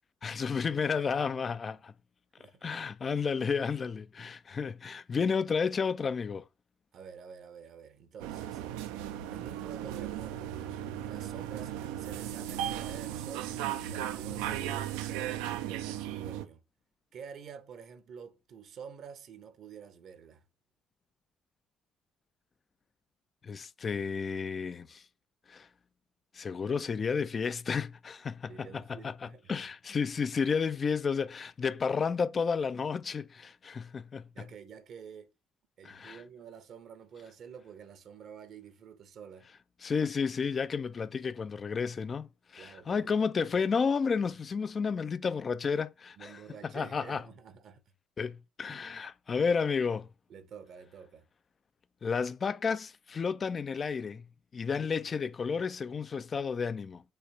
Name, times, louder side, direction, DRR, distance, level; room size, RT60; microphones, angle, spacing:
voice 1, 0.2-1.9 2.6-6.4 23.4-25.0 25.5-25.7 26.3-34.3 35.8-36.2 39.8-46.4 46.7-47.2 48.2-50.1 52.0-54.3 54.5-57.0, left 5 dB, 35° left, 0.4 m, -32 dB
voice 2, 2.4-2.7 6.9-8.6 9.3-10.6 11.1-13.5 13.8-16.6 17.1-20.4 28.5-29.5 34.3-35.3 35.8-39.5 42.6-43.3 46.2-47.8 48.7-48.8 50.3-51.3, right 7 dB, 55° right, 0.8 m, -49 dB
sound 1, 8.2-16.5, right 11 dB, 70° right, 0.5 m, -36 dB
5.7 x 3.3 x 5.1 m
figure-of-eight pair, 50°, 0 cm